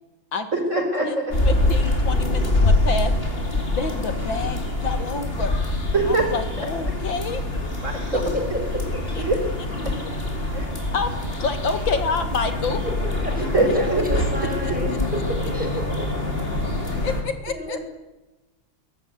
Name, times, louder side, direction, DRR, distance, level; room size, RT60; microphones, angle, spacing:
voice 1, 0.5-1.3 5.9-6.3 7.8-8.2 9.2-9.4 9.8-10.0 10.5-10.7 13.4-14.1 16.9-17.0 17.7-17.8, right 2 dB, 35° right, 5 dB, 4.6 m, -23 dB
voice 2, 1.0-3.1 3.6-5.6 6.1-7.6 9.1-9.2 10.0-10.1 10.9-12.8 16.8-17.8, left 4 dB, 70° left, 8 dB, 2.6 m, -28 dB
sound 1, 1.3-17.2, left 2 dB, 25° left, 4.6 m, -25 dB
voice 3, 13.7-15.0 15.3-16.7 17.5-17.8, equal, 5° right, 3 dB, 6.5 m, -32 dB
22.5 x 18.5 x 9.5 m, 1.0 s
omnidirectional pair, 2.3 m